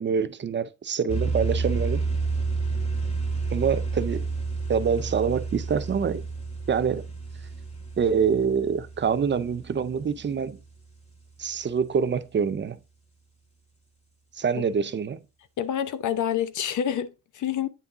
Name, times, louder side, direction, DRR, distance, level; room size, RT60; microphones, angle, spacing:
voice 1, 0.0-2.0 3.5-4.3 4.7-6.2 6.7-7.1 8.0-10.6 11.4-12.8 14.3-15.2, right 6 dB, 35° right, 0.5 m, -25 dB
sound 1, 1.1-10.6, right 4 dB, 20° left, 2.2 m, -30 dB
voice 2, 15.6-17.7, left 9 dB, 70° left, 0.7 m, -28 dB
9.1 x 3.5 x 3.8 m
cardioid pair, 85°, 31 cm